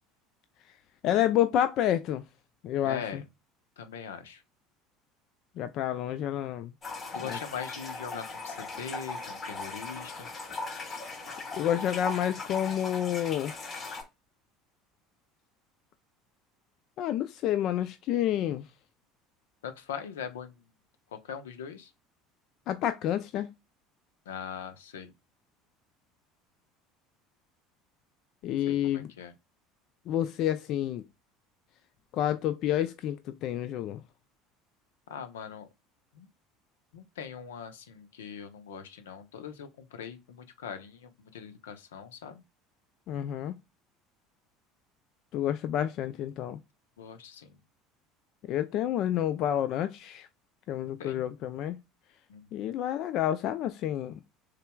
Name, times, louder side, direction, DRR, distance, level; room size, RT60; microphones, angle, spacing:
voice 1, 1.0-2.2 2.6-3.2 5.6-6.7 7.3-7.4 11.6-13.5 17.0-18.7 22.7-23.5 28.4-29.1 30.1-31.0 32.1-34.0 43.1-43.5 45.3-46.6 48.5-50.3 50.7-51.8 52.5-54.2, left 11 dB, 60° left, 0.4 m, -29 dB
voice 2, 2.8-3.2 3.8-4.4 7.1-10.3 19.6-20.6 21.1-21.9 24.3-25.1 28.7-29.3 35.1-35.7 36.1-36.3 36.9-42.4 47.0-47.5 51.0-51.3 52.3-52.5, left 7 dB, 85° left, 0.8 m, -41 dB
sound 1, 6.8-14.0, left 3 dB, 40° left, 2.8 m, -38 dB
6.6 x 3.3 x 2.3 m
hypercardioid pair, 75°, 0 cm